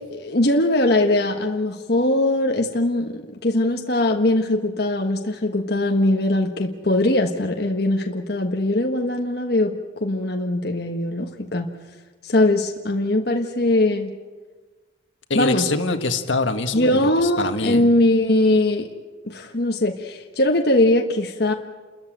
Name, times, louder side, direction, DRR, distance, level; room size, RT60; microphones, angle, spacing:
voice 1, 0.1-9.7 10.0-11.7 12.2-14.1 15.3-15.7 16.7-18.9 19.2-21.5, left 1 dB, 55° left, 3 dB, 1.4 m, -21 dB
voice 2, 15.3-17.9, left 3 dB, 75° left, 6 dB, 1.7 m, -24 dB
30.0 x 14.0 x 9.1 m, 1.3 s
head